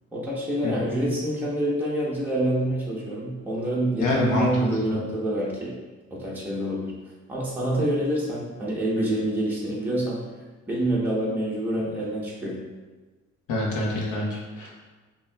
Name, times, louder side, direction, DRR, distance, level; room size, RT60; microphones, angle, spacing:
voice 1, 0.1-5.7 6.1-6.9 7.3-10.2 10.7-12.6, right 1 dB, 5° right, -6 dB, 1.0 m, -26 dB
voice 2, 4.0-4.9 13.5-14.7, left 2 dB, 85° left, -4 dB, 1.2 m, -26 dB
5.5 x 2.9 x 2.3 m, 1.3 s
cardioid pair, 90°, 30 cm